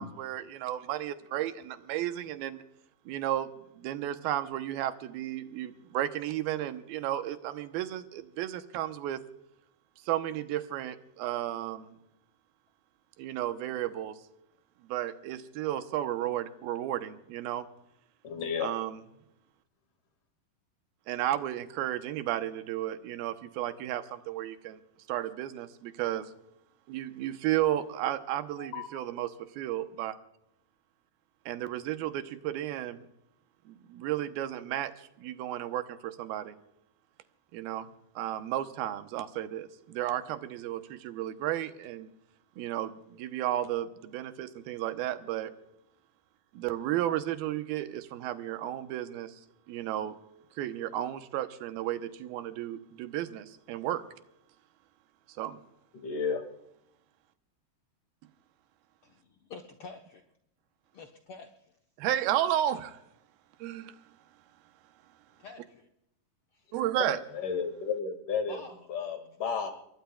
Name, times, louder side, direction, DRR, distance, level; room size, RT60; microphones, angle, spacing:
voice 1, 0.0-2.6 3.1-3.5 3.8-9.2 10.1-12.0 13.2-14.2 14.8-17.7 18.6-19.0 21.1-24.8 25.1-26.3 26.9-30.2 31.5-33.1 33.7-36.6 37.5-37.9 38.2-42.1 42.6-45.5 46.5-49.4 49.7-50.2 50.6-54.0 55.4-55.6 62.0-63.0 63.6-64.0 66.7-67.2, right 12 dB, 90° right, 9 dB, 2.7 m, -33 dB
voice 2, 18.2-18.7 28.6-28.9 55.9-56.4 67.0-68.6 68.9-69.7, left 6 dB, 65° left, 5 dB, 3.5 m, -33 dB
voice 3, 59.0-60.2 60.9-61.7 65.4-65.9 66.5-66.7 68.5-68.9, left 4 dB, 90° left, 2 dB, 1.2 m, -48 dB
28.0 x 22.0 x 2.3 m, 0.80 s
omnidirectional pair, 4.2 m